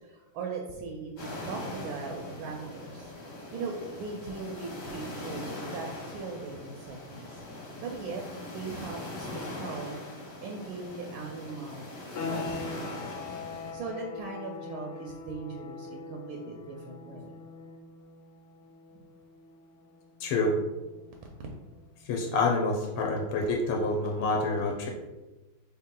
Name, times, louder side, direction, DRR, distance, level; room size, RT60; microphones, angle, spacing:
voice 1, 0.0-3.1 3.5-7.4 7.8-8.2 8.5-10.0 10.4-11.9 12.2-12.6 13.7-17.4 21.4-21.5, right 4 dB, 75° right, 1 dB, 1.3 m, -39 dB
sound 1, 1.2-13.7, left 2 dB, 50° left, 1.5 m, -41 dB
sound 2, 12.1-22.7, left 3 dB, 65° left, 1.2 m, -43 dB
voice 2, 20.2-20.6 22.1-24.9, left 2 dB, 85° left, 0 dB, 1.5 m, -27 dB
3.6 x 2.9 x 3.7 m, 1.1 s
omnidirectional pair, 2.4 m